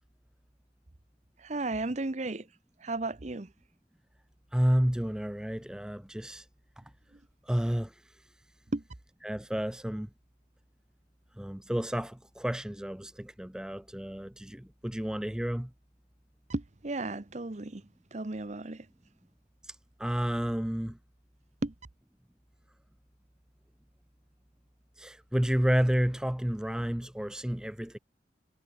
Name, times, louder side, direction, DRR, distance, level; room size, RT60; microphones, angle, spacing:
voice 1, 1.4-2.5 2.8-3.5 8.7-8.8 16.5-17.8 18.1-18.9 21.6-21.7, right 2 dB, 40° right, 0.9 m, -34 dB
voice 2, 4.5-6.4 7.5-7.9 9.2-10.1 11.4-15.7 19.7-21.0 25.0-28.0, equal, 5° right, 0.4 m, -30 dB
head